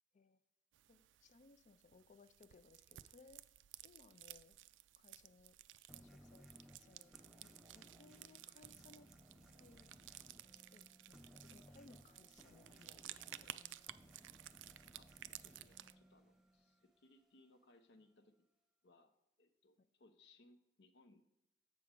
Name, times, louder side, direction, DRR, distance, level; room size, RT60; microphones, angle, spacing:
sound 1, 0.7-15.9, right 14 dB, 80° right, 0.3 m, -56 dB
voice 1, 0.9-3.4 3.8-4.5 5.0-5.6 5.9-9.1 9.5-9.9 10.5-13.8, left 3 dB, 40° left, 12 dB, 0.4 m, -65 dB
sound 2, 5.9-17.1, equal, 5° right, 0.7 m, -63 dB
voice 2, 15.4-18.5 18.8-19.1 19.4-21.2, left 2 dB, 70° left, 7 dB, 0.8 m, -68 dB
7.5 x 6.0 x 3.7 m, 0.87 s
head